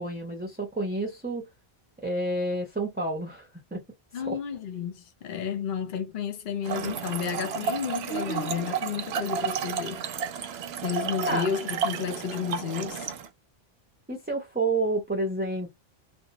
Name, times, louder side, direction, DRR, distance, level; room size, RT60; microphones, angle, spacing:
voice 1, 0.0-1.5 2.0-3.8 4.1-4.4 11.3-11.5 14.1-15.7, right 2 dB, 10° right, 0.5 m, -29 dB
voice 2, 4.1-10.0 10.8-13.1, left 7 dB, 55° left, 0.8 m, -32 dB
Trickle dribble / Fill (with liquid), 6.6-13.3, right 7 dB, 75° right, 0.8 m, -32 dB
2.6 x 2.1 x 2.7 m
omnidirectional pair, 1.1 m